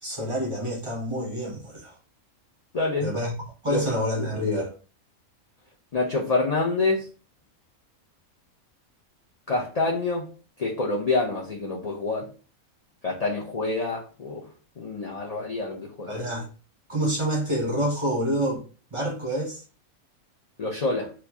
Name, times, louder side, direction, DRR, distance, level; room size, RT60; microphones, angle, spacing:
voice 1, 0.0-1.9 3.0-3.4 3.6-4.7 16.1-16.5 16.9-18.6 18.9-19.6, equal, 30° right, 0.6 m, -27 dB
voice 2, 2.7-3.1 3.7-3.8 5.9-7.1 9.5-10.3 10.6-12.3 13.0-14.5 14.8-16.1 20.6-21.1, left 3 dB, 75° left, 0.3 m, -27 dB
2.9 x 2.3 x 3.5 m
omnidirectional pair, 1.5 m